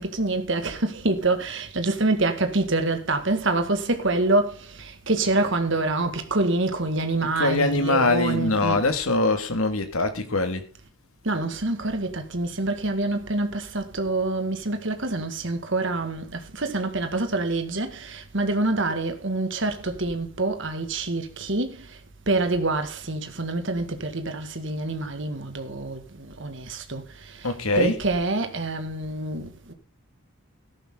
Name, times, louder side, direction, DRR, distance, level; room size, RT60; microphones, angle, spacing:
voice 1, 0.0-8.9 11.2-21.9 22.3-27.0 27.3-29.7, right 2 dB, 60° right, 2.0 m, -26 dB
voice 2, 7.4-10.6 27.4-28.1, left 2 dB, 85° left, 2.1 m, -23 dB
14.0 x 11.0 x 3.8 m
head